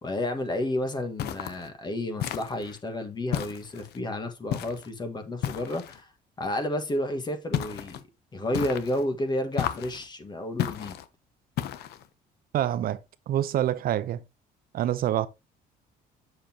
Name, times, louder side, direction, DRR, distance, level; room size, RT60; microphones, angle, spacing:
voice 1, 0.0-6.1 6.4-8.0 8.3-11.0, left 1 dB, 25° left, 1.6 m, -31 dB
sound 1, 1.2-1.7 2.2-2.8 3.3-4.0 4.5-4.9 5.4-6.0 7.5-8.0 8.5-9.1 9.6-10.1 10.6-11.1 11.6-12.1, left 11 dB, 75° left, 0.8 m, -32 dB
voice 2, 12.5-13.0 13.3-14.2 14.7-15.3, right 12 dB, 60° right, 0.6 m, -26 dB
7.7 x 6.5 x 2.9 m
cardioid pair, 110°, 17 cm